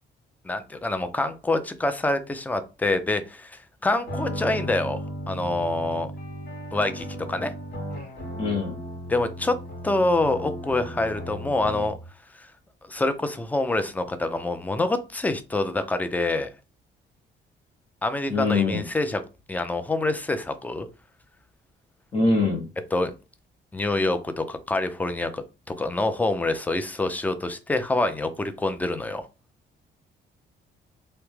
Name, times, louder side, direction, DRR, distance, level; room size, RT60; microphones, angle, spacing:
voice 1, 0.4-5.0 5.3-6.1 6.7-7.5 9.1-9.6 9.8-12.0 12.4-12.5 12.9-16.5 18.0-19.2 19.5-20.9 22.9-23.1 23.7-29.3, left 2 dB, 10° left, 9 dB, 0.3 m, -26 dB
sound 1, 4.0-12.1, equal, 55° left, 1.0 m, -35 dB
voice 2, 8.4-8.8 18.3-18.8 22.1-22.7, left 3 dB, 30° left, -3 dB, 0.7 m, -23 dB
2.1 x 2.0 x 3.0 m, 0.29 s
cardioid pair, 90°, 20 cm